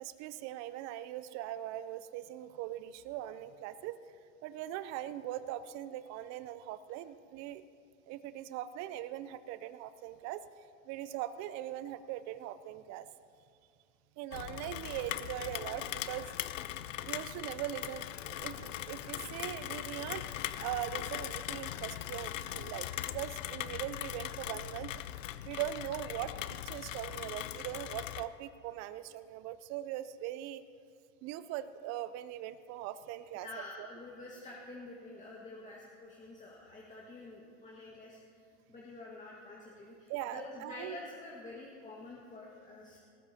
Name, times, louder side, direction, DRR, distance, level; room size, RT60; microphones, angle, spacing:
voice 1, 0.0-4.0 4.4-7.6 8.1-10.4 10.9-13.1 14.2-16.3 17.0-20.3 20.6-24.9 25.4-30.6 31.2-33.9 40.1-41.0, right 12 dB, 45° right, 14 dB, 0.5 m, -41 dB
Rain, 14.3-28.3, left 12 dB, 85° left, 0.6 m, -40 dB
voice 2, 33.4-43.0, left 2 dB, 20° left, -3 dB, 1.6 m, -48 dB
18.5 x 14.0 x 2.8 m, 2.3 s
hypercardioid pair, 110°, 37 cm